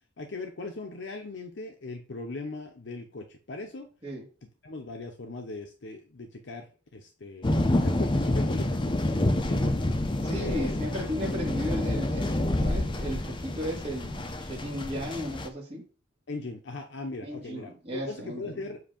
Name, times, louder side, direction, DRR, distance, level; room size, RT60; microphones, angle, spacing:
voice 1, 0.2-3.9 4.4-9.0 9.3-9.9 10.3-10.8 16.3-18.8, left 3 dB, 65° left, 3 dB, 0.8 m, -39 dB
sound 1, 7.4-15.5, left 1 dB, 25° left, 0.6 m, -28 dB
voice 2, 10.2-15.8 17.2-18.6, equal, 30° right, -4 dB, 1.5 m, -35 dB
7.8 x 2.7 x 5.0 m, 0.36 s
head